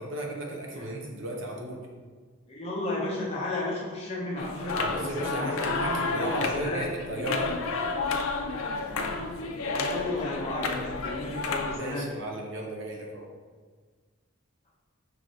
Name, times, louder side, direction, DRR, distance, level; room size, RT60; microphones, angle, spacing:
voice 1, 0.0-1.8 4.7-7.6 11.8-13.3, right 1 dB, 60° right, 0 dB, 0.7 m, -35 dB
voice 2, 2.5-6.9 9.7-12.0, left 2 dB, 30° left, -5 dB, 0.8 m, -33 dB
sound 1, 4.4-11.8, left 3 dB, 75° left, 0.4 m, -31 dB
5.8 x 3.2 x 2.6 m, 1.5 s
head